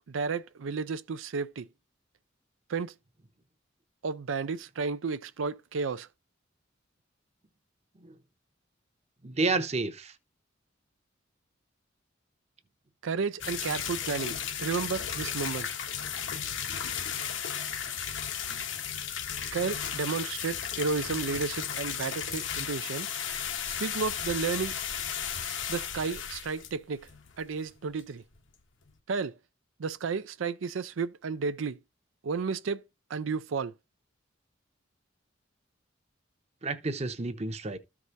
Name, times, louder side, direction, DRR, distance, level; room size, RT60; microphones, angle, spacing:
voice 1, 0.1-1.7 2.7-2.9 4.0-6.1 13.0-14.3 14.6-15.7 19.5-23.1 23.7-24.7 25.7-27.1 27.4-28.2 29.1-29.4 29.8-31.8 32.2-32.8 33.1-33.7, right 5 dB, 90° right, 0.5 m, -32 dB
voice 2, 9.2-10.1 36.6-37.8, right 3 dB, 35° right, 0.8 m, -30 dB
sound 1, 13.4-27.7 28.0-28.1 28.3-28.4 28.9-29.0, left 8 dB, 80° left, 1.2 m, -35 dB
14.0 x 4.8 x 2.6 m
head